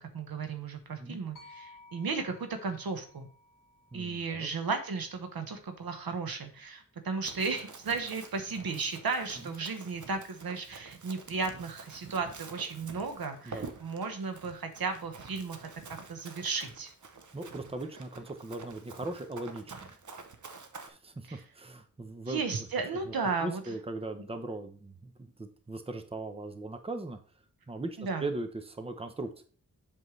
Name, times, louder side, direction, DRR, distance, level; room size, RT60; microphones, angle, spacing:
voice 1, 0.0-3.3 3.9-16.9 21.3-21.4 22.3-23.6 28.0-28.3, right 4 dB, 90° right, 7 dB, 1.1 m, -35 dB
sound 1, 1.4-5.6, left 2 dB, 60° left, 1.0 m, -57 dB
voice 2, 3.9-4.5 9.4-9.5 13.5-13.7 17.3-19.9 20.8-22.4 23.1-23.2 23.4-27.2 27.7-29.4, right 2 dB, 15° right, 8 dB, 0.7 m, -39 dB
Run, 7.2-20.9, right 4 dB, 55° right, 0.8 m, -48 dB
7.7 x 5.4 x 3.2 m, 0.42 s
wide cardioid pair, 110°, 35 cm